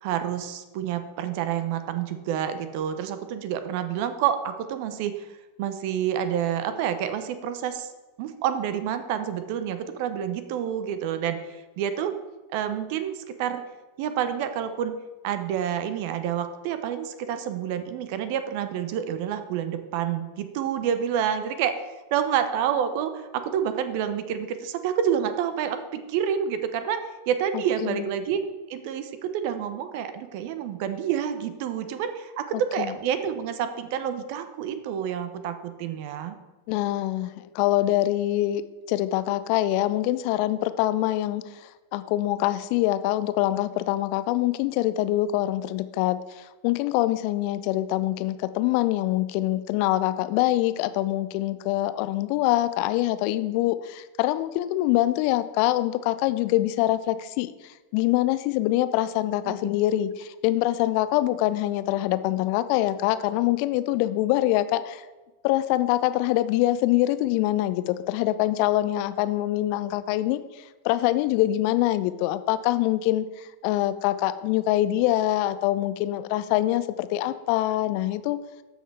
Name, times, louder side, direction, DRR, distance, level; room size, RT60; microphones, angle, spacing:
voice 1, 0.0-5.3 5.6-7.9 8.2-12.1 12.5-13.6 14.0-14.9 15.2-27.0 27.3-28.4 28.7-36.4 59.4-59.7, right 9 dB, 45° right, 10 dB, 0.8 m, -28 dB
voice 2, 36.7-38.6 38.9-57.5 57.9-65.0 65.4-70.4 70.8-78.4, left 15 dB, 45° left, 13 dB, 0.5 m, -24 dB
13.0 x 6.4 x 3.4 m, 1.1 s
figure-of-eight pair, 90°, 0 cm